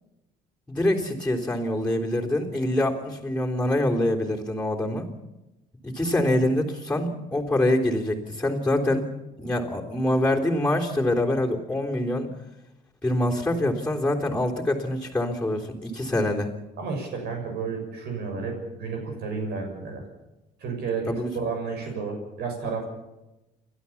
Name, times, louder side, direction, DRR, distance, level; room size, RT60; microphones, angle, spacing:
voice 1, 0.7-5.1 5.8-9.1 9.4-12.3 13.0-16.5 21.1-21.3, left 1 dB, 5° left, -1 dB, 3.5 m, -25 dB
voice 2, 16.8-20.0 20.6-22.9, right 5 dB, 70° right, 3 dB, 6.5 m, -31 dB
29.5 x 12.0 x 7.2 m, 0.97 s
cardioid pair, 110°, 17 cm